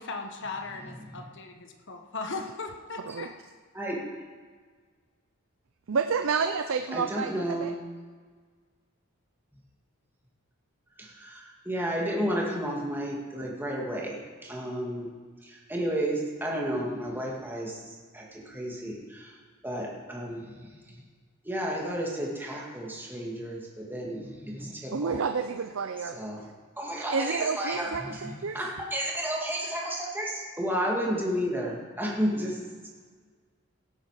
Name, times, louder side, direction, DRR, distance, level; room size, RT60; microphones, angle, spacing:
voice 1, 0.0-3.3, left 3 dB, 60° left, 4 dB, 1.3 m, -38 dB
voice 2, 0.8-1.3 3.7-4.1 6.9-7.8 11.0-15.1 15.4-19.4 19.6-21.0 21.4-25.2 26.0-26.5 26.8-32.6, equal, 10° right, -2 dB, 2.3 m, -32 dB
voice 3, 3.0-3.3 5.9-7.7 24.9-26.2 27.1-28.6, right 5 dB, 65° right, 8 dB, 0.6 m, -30 dB
17.0 x 8.5 x 5.0 m, 1.5 s
head